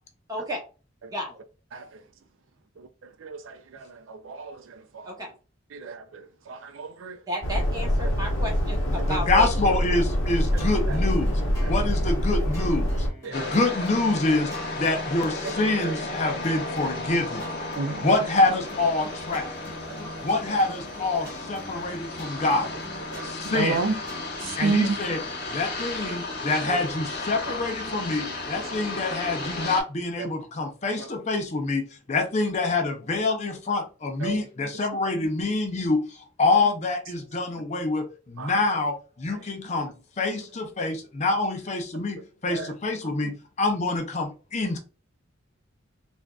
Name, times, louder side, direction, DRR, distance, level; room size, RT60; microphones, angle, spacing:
voice 1, 0.3-0.6 1.1-1.4 5.0-5.3 7.3-9.5, left 1 dB, 20° right, 0.9 m, -32 dB
voice 2, 3.2-5.2 5.7-7.2 10.5-11.0 11.6-11.7 13.2-13.5 15.4-15.5 15.8-15.9 17.8-18.1 19.9-20.3 21.2-21.3 23.1-24.0 24.4-25.0 26.7-26.8 27.4-27.6 34.2-34.4 38.4-38.5 39.3-39.4 42.5-42.7 43.2-43.3, right 3 dB, 75° right, 0.4 m, -32 dB
sound 1, 7.4-13.1, equal, 80° left, 0.9 m, -25 dB
voice 3, 9.1-11.4 11.7-14.5 14.8-17.4 17.9-19.5 20.2-22.7 23.2-23.8 24.6-25.2 25.5-44.8, left 2 dB, 35° left, 0.5 m, -26 dB
sound 2, 9.9-25.3, left 1 dB, 15° left, 1.2 m, -46 dB
sound 3, 13.3-29.8, left 2 dB, 55° left, 1.0 m, -34 dB
3.5 x 2.5 x 2.2 m
head